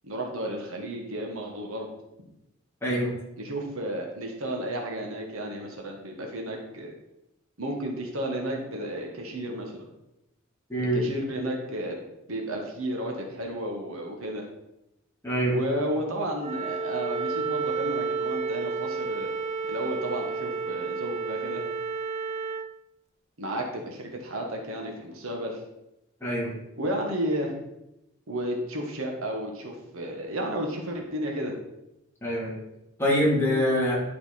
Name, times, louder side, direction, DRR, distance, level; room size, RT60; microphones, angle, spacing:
voice 1, 0.0-1.9 3.4-6.9 7.6-9.9 10.9-12.0 12.3-14.4 15.5-19.4 19.7-21.6 23.4-25.6 26.8-27.5 28.3-31.5, right 1 dB, 75° right, 1 dB, 1.6 m, -32 dB
voice 2, 2.8-3.1 10.7-11.0 15.2-15.5 26.2-26.5 32.2-32.6 33.0-34.0, equal, 10° left, -6 dB, 3.0 m, -24 dB
Wind instrument woodwind instrument, 16.4-22.7, right 4 dB, 35° right, 0.4 m, -31 dB
11.0 x 5.6 x 4.2 m, 0.89 s
head